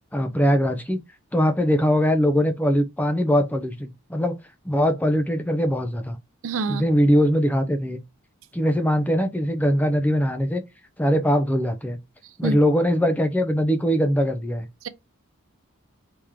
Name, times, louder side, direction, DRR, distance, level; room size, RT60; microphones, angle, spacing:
voice 1, 0.1-1.0 1.3-4.4 4.7-6.2 6.7-8.0 8.5-10.6 11.0-12.0 12.4-14.7, equal, 5° left, 0.4 m, -21 dB
voice 2, 6.4-6.8 12.4-12.6 14.8-14.9, right 4 dB, 70° right, 0.5 m, -26 dB
3.6 x 2.9 x 4.8 m
head